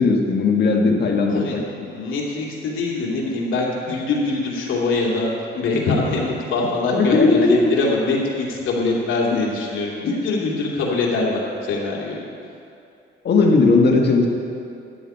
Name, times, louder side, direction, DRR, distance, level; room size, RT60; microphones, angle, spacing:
voice 1, 0.0-1.6 1.9-2.0 6.9-7.7 9.3-9.4 13.2-14.3, left 3 dB, 55° left, 2 dB, 1.6 m, -17 dB
voice 2, 1.3-5.3 5.5-11.3 11.6-12.2, left 3 dB, 80° left, -3 dB, 2.7 m, -23 dB
13.5 x 10.5 x 4.4 m, 2.7 s
cardioid pair, 90°, 20 cm